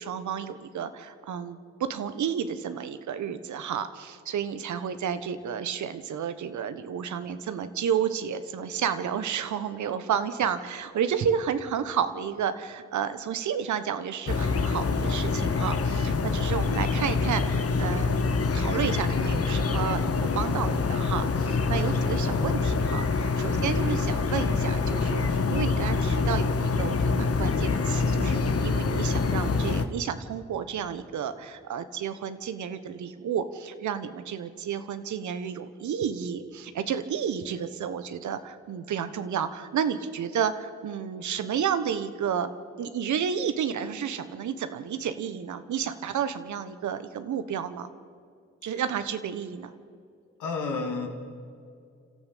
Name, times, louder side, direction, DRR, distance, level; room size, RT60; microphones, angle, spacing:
voice 1, 0.0-42.5 42.8-47.9 48.6-49.7, right 8 dB, 75° right, 11 dB, 1.2 m, -31 dB
sound 1, 14.3-29.8, left 4 dB, 50° left, 1.5 m, -26 dB
voice 2, 21.9-22.4 23.5-24.1 48.7-48.8 50.4-51.1, left 4 dB, 85° left, 2 dB, 2.4 m, -33 dB
28.0 x 13.0 x 8.5 m, 2.3 s
supercardioid pair, 40°, 30 cm